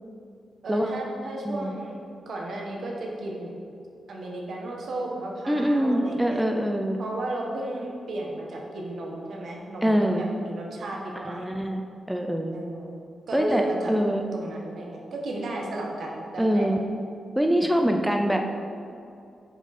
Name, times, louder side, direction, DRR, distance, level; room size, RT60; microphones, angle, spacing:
voice 1, 0.6-2.0 2.3-3.6 4.1-6.4 7.0-11.5 12.5-13.0 13.3-13.9 14.3-16.7, right 1 dB, 70° right, -1 dB, 1.1 m, -34 dB
voice 2, 5.5-7.0 9.8-10.3 11.2-11.8 12.1-12.5 13.3-14.2 16.4-16.8 17.4-18.6, equal, 5° right, 3 dB, 0.4 m, -24 dB
7.1 x 3.7 x 4.1 m, 2.5 s
cardioid pair, 75°, 0 cm